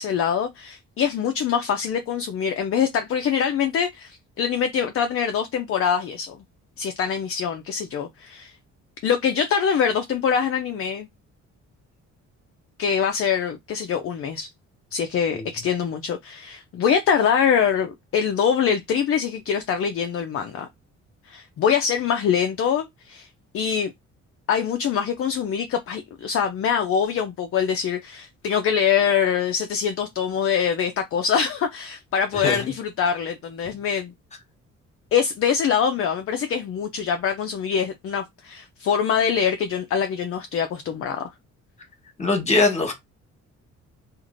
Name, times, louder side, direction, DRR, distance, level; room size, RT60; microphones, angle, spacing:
voice 1, 0.0-6.4 6.8-8.5 9.0-11.1 12.8-14.5 14.9-20.7 21.3-23.3 23.5-23.9 24.5-34.1 35.1-41.3, left 7 dB, 50° left, 0.4 m, -24 dB
voice 2, 32.3-32.7 42.2-42.9, left 3 dB, 20° left, 1.2 m, -21 dB
2.9 x 2.5 x 2.5 m
cardioid pair, 90°, 30 cm